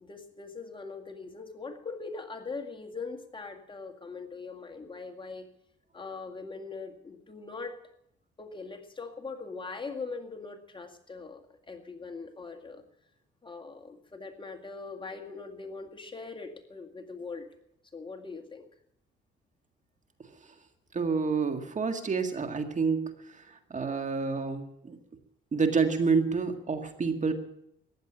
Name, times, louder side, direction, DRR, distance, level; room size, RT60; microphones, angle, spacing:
voice 1, 0.0-5.5 5.9-7.8 8.4-12.8 13.4-17.5 17.9-18.7, left 4 dB, 25° left, 4 dB, 2.0 m, -41 dB
voice 2, 20.9-25.0 25.5-27.3, right 5 dB, 40° right, 7 dB, 1.9 m, -28 dB
15.0 x 10.5 x 8.9 m, 0.77 s
cardioid pair, 90°, 20 cm